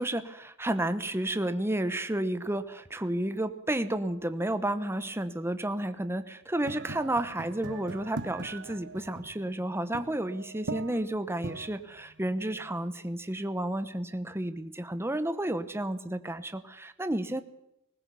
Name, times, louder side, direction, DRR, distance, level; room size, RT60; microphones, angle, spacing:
voice 1, 0.0-17.4, right 1 dB, 10° right, 10 dB, 1.0 m, -31 dB
sound 1, 6.6-12.9, right 3 dB, 60° right, 1.1 m, -42 dB
20.0 x 19.5 x 7.0 m, 0.83 s
head